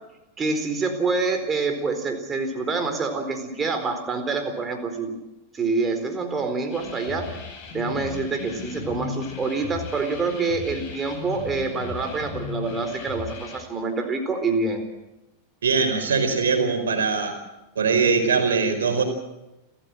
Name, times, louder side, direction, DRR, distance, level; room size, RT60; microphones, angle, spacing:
voice 1, 0.4-5.1 5.5-7.3 7.7-14.8, right 4 dB, 20° right, 6 dB, 4.3 m, -26 dB
sound 1, 6.7-13.6, left 6 dB, 40° left, 7.9 m, -37 dB
voice 2, 15.6-17.4 17.7-19.0, right 5 dB, 65° right, 6 dB, 4.6 m, -21 dB
30.0 x 14.0 x 7.7 m, 0.98 s
figure-of-eight pair, 90°, 0 cm